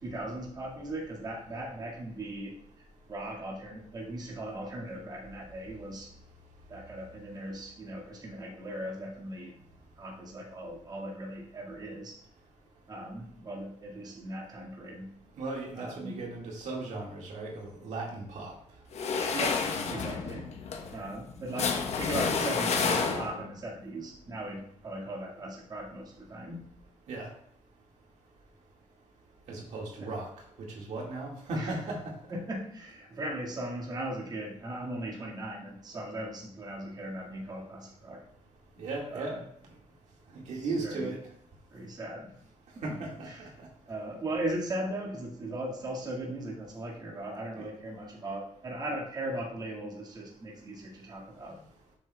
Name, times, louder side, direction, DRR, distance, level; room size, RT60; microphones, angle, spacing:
voice 1, 0.0-2.5 3.1-6.1 6.7-9.5 10.0-12.2 12.9-15.1 15.8-16.2 19.3-20.5 20.9-26.7 31.5-31.8 32.3-38.2 39.1-39.4 40.8-41.1 41.7-42.3 43.3-43.5 43.9-51.6, right 1 dB, 35° right, -3 dB, 1.9 m, -38 dB
voice 2, 15.4-18.5 27.1-27.3 29.5-30.3 30.6-32.1 38.8-39.4 40.3-41.2 42.8-43.7 47.6-47.7, right 2 dB, 75° right, -1 dB, 1.9 m, -36 dB
sound 1, 18.9-23.6, left 5 dB, 60° left, 1.0 m, -30 dB
12.0 x 7.0 x 2.3 m, 0.67 s
cardioid pair, 155°, 12 cm